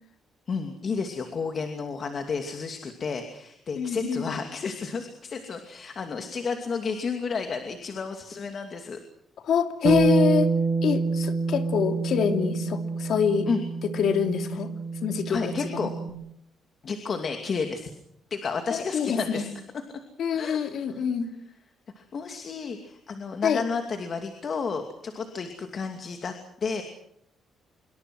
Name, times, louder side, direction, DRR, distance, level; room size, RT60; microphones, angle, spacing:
voice 1, 0.5-9.0 13.5-13.6 15.3-15.9 16.8-17.9 18.3-19.5 19.9-20.0 20.3-20.6 20.9-21.0 22.0-26.3 26.6-26.8, left 5 dB, 40° left, 5 dB, 2.6 m, -31 dB
voice 2, 3.8-4.2 9.5-10.5 10.8-13.5 13.9-14.7 15.0-15.9 18.7-19.4 20.2-21.3 23.4-23.6, left 7 dB, 60° left, 7 dB, 2.9 m, -25 dB
Bass guitar, 9.8-16.1, right 4 dB, 40° right, 2.6 m, -27 dB
27.0 x 23.5 x 6.3 m, 0.73 s
cardioid pair, 140°, 0 cm